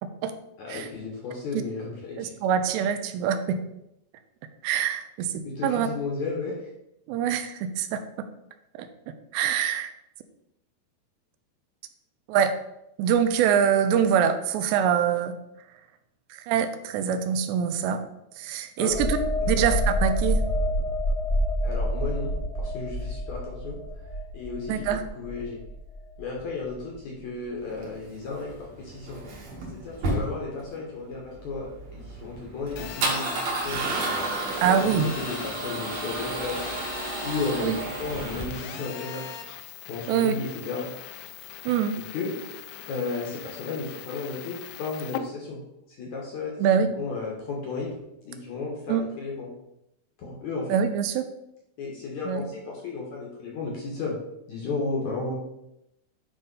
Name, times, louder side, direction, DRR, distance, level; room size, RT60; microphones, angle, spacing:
voice 1, 0.6-2.3 5.4-6.5 18.8-19.0 19.5-19.6 21.6-22.3 22.6-23.8 24.3-25.6 26.2-29.2 29.7-33.9 34.6-36.6 37.2-39.2 39.9-40.9 42.0-42.3 42.9-45.6 45.9-48.0 48.3-49.5 50.2-50.7 51.8-54.2 54.5-55.3, left 4 dB, 60° left, -2 dB, 2.0 m, -33 dB
voice 2, 2.2-3.6 4.6-5.9 7.1-8.3 8.8-8.9 9.3-9.9 12.3-12.5 13.0-15.3 16.5-18.0 18.4-19.2 19.5-20.4 24.7-25.0 34.6-35.1 37.6-37.8 40.1-40.4 41.7-42.0 46.6-46.9 48.9-49.0 50.7-51.3 52.3-52.4, right 8 dB, 85° right, 9 dB, 2.8 m, -24 dB
sound 1, 18.9-26.3 26.7-26.9, equal, 15° right, 1.0 m, -28 dB
Male speech man speaking / Car / Engine starting, 27.7-38.8, right 2 dB, 50° right, 2.2 m, -32 dB
Telephone, 32.8-45.2, left 11 dB, 80° left, 2.4 m, -41 dB
10.0 x 3.5 x 5.4 m, 0.83 s
omnidirectional pair, 5.0 m